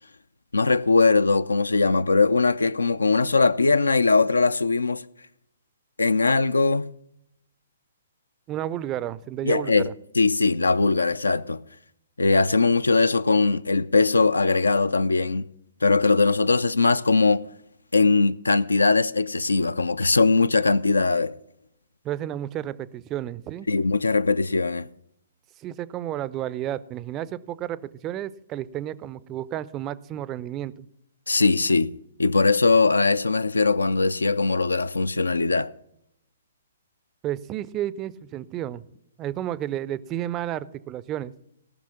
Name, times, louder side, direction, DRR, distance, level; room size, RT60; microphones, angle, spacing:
voice 1, 0.5-5.0 6.0-6.9 9.4-9.9 10.2-11.6 12.2-15.5 15.8-17.4 17.9-21.3 23.7-24.9 31.3-31.9 32.2-35.7, left 3 dB, 75° left, 0.4 m, -20 dB
voice 2, 8.5-9.9 22.0-23.7 25.6-30.9 37.2-38.8 39.2-41.3, right 12 dB, 20° right, 0.4 m, -32 dB
17.5 x 6.2 x 5.7 m
figure-of-eight pair, 120°, 0 cm